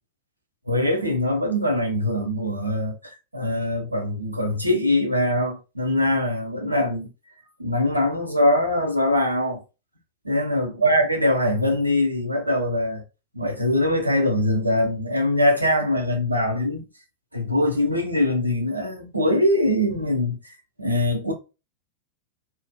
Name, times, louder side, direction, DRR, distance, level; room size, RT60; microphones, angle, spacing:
voice 1, 0.7-7.1 7.6-9.6 10.2-13.0 13.3-16.8 17.3-20.4 20.8-21.3, left 1 dB, 85° right, 0.6 m, -22 dB
2.6 x 2.4 x 2.2 m
figure-of-eight pair, 90°, 0 cm